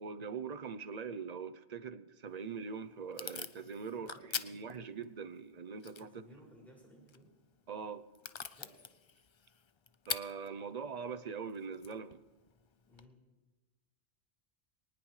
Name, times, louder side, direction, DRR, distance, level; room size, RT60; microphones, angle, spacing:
voice 1, 0.0-6.1 7.7-8.0 10.1-12.2, right 5 dB, 45° right, 12 dB, 0.7 m, -42 dB
Packing tape duct tape / Tearing, 2.3-13.1, left 6 dB, 50° left, 0.3 m, -47 dB
voice 2, 3.9-4.2 6.0-7.3 8.5-8.8 12.9-13.2, equal, ahead, -4 dB, 5.9 m, -58 dB
21.5 x 19.5 x 3.2 m, 1.3 s
omnidirectional pair, 1.2 m